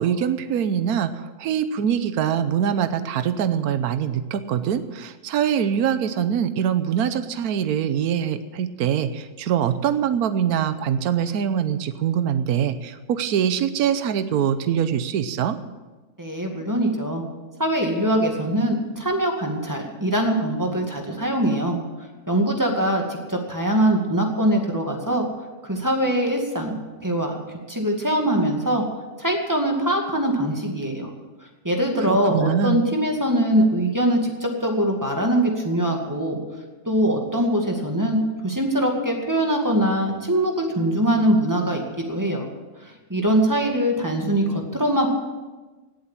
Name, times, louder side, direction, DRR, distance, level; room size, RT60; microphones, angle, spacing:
voice 1, 0.0-15.6 32.0-32.8, right 8 dB, 75° right, 11 dB, 1.3 m, -23 dB
voice 2, 16.2-17.2 17.6-21.8 22.3-25.2 25.6-26.7 27.0-27.4 27.7-28.8 29.2-31.1 31.6-36.4 36.9-38.2 38.4-41.8 42.1-42.5 42.8-45.1, right 1 dB, 10° right, 1 dB, 2.1 m, -22 dB
17.5 x 7.8 x 7.4 m, 1.2 s
omnidirectional pair, 1.6 m